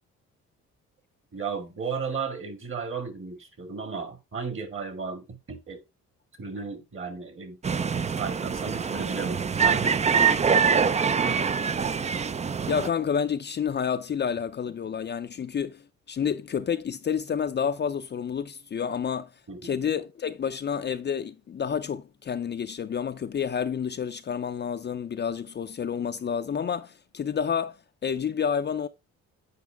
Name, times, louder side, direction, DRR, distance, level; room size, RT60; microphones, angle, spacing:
voice 1, 1.3-5.8 6.4-7.6 8.1-11.5 19.5-19.8, right 5 dB, 40° right, 2.0 m, -35 dB
sound 1, 7.6-12.9, right 6 dB, 25° right, 0.4 m, -24 dB
voice 2, 12.7-19.3 19.6-27.8 28.0-28.9, left 7 dB, 35° left, 0.5 m, -29 dB
8.3 x 4.7 x 3.4 m
cardioid pair, 90°, 30 cm